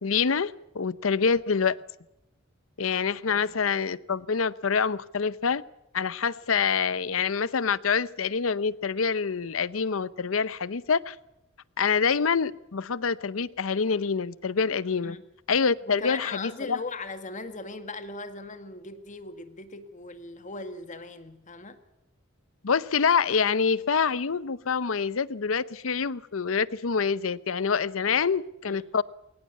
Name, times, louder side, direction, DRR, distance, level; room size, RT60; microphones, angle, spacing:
voice 1, 0.0-1.8 2.8-5.6 5.9-11.2 11.8-15.2 15.5-16.8 22.6-29.0, left 5 dB, 90° left, 18 dB, 0.7 m, -26 dB
voice 2, 3.3-3.6 15.0-15.3 15.9-21.8 28.1-28.2 28.6-28.9, left 3 dB, 40° left, 9 dB, 2.0 m, -39 dB
21.5 x 19.0 x 8.4 m, 0.88 s
head